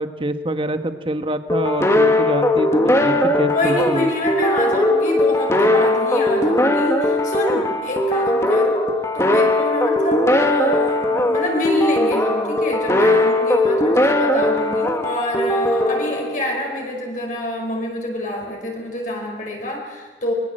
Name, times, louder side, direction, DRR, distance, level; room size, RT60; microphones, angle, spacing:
voice 1, 0.0-4.1, right 1 dB, 25° right, 9 dB, 1.3 m, -25 dB
sound 1, 1.5-16.9, left 1 dB, 15° left, 1.7 m, -19 dB
voice 2, 2.7-3.2 3.5-8.8 9.1-20.3, left 1 dB, 45° left, 0 dB, 5.0 m, -26 dB
24.0 x 21.5 x 7.8 m, 1.3 s
head